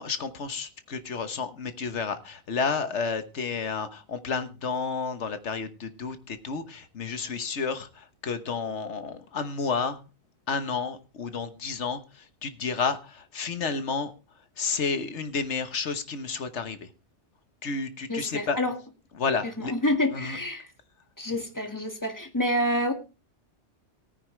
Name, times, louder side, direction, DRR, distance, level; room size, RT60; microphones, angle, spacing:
voice 1, 0.0-10.1 10.5-14.1 14.6-16.9 17.6-18.6 19.2-19.7 20.1-20.4, left 5 dB, 80° left, 10 dB, 1.5 m, -31 dB
voice 2, 18.1-18.7 19.4-20.7 21.2-22.9, left 1 dB, 15° left, 5 dB, 1.8 m, -28 dB
18.0 x 9.7 x 3.2 m, 0.30 s
omnidirectional pair, 1.2 m